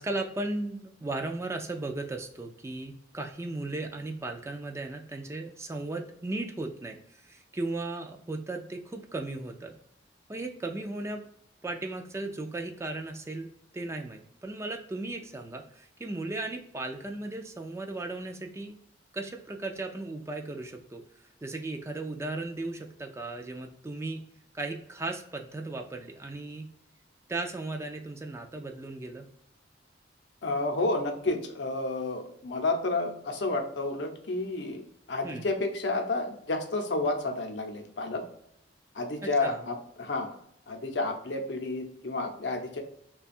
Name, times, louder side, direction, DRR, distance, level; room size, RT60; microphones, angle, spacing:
voice 1, 0.0-9.8 10.3-11.3 11.6-18.8 19.1-21.0 21.4-24.2 24.5-26.7 27.3-29.3 35.2-35.5 39.4-39.7, right 2 dB, 15° right, 3 dB, 0.3 m, -36 dB
voice 2, 30.4-34.8 35.1-38.2 38.9-40.3 40.7-42.8, left 2 dB, 70° left, 4 dB, 0.6 m, -30 dB
3.2 x 2.3 x 4.2 m, 0.72 s
head